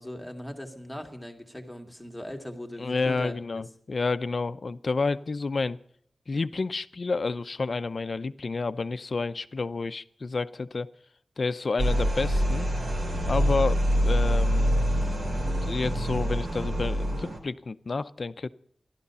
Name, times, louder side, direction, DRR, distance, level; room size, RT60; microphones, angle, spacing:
voice 1, 0.0-3.6, equal, 5° left, 2 dB, 2.0 m, -39 dB
voice 2, 2.8-5.8 6.3-10.9 11.4-12.7 13.3-14.7 15.4-18.5, left 3 dB, 55° left, 13 dB, 0.6 m, -30 dB
sound 1, 11.8-17.4, equal, 65° right, 2.9 m, -25 dB
14.5 x 12.0 x 6.9 m, 0.66 s
wide cardioid pair, 115°, 0 cm